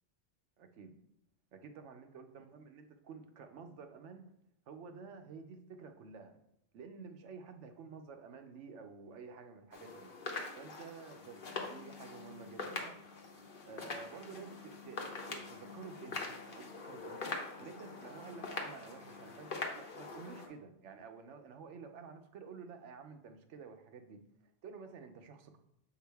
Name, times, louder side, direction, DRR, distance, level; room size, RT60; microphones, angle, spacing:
voice 1, 0.6-0.9 1.5-4.2 4.7-6.3 6.7-10.1 10.6-13.0 13.7-17.2 17.6-24.2 24.4-25.6, right 5 dB, 80° right, 7 dB, 1.0 m, -51 dB
sound 1, 9.7-20.5, left 3 dB, 50° left, 1.0 m, -44 dB
7.4 x 4.8 x 3.4 m, 0.77 s
omnidirectional pair, 1.2 m